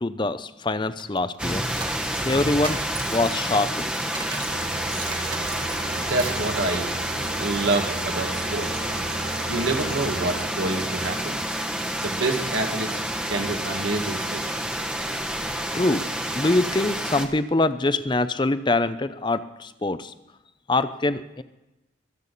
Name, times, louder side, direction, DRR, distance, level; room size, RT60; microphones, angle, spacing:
voice 1, 0.0-1.6 2.2-2.8 3.1-3.7 15.7-16.1 16.3-20.1 20.7-21.4, left 2 dB, 25° left, 13 dB, 0.5 m, -24 dB
sound 1, 1.0-4.6 4.9-6.5, right 3 dB, 25° right, 1.9 m, -37 dB
sound 2, 1.4-17.3, right 1 dB, 5° right, 1.0 m, -29 dB
sound 3, 4.5-10.5, right 3 dB, 55° right, 0.8 m, -36 dB
voice 2, 5.9-6.9 7.4-8.9 9.5-11.4 12.0-13.0 13.3-14.6, right 2 dB, 80° right, 2 dB, 2.0 m, -27 dB
23.5 x 8.4 x 4.1 m, 0.98 s
head